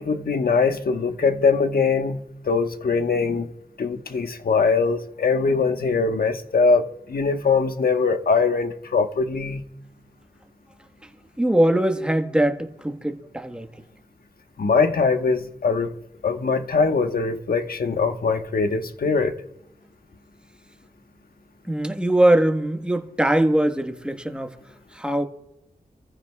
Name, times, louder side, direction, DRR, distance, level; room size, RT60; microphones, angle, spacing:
voice 1, 0.0-3.5 3.8-9.6 14.6-15.9 16.2-19.3, left 4 dB, 65° left, 1.3 m, -22 dB
voice 2, 11.4-13.7 21.6-24.6 24.9-25.3, right 1 dB, 5° right, 1.4 m, -21 dB
28.0 x 15.0 x 2.4 m
cardioid pair, 65°, 17 cm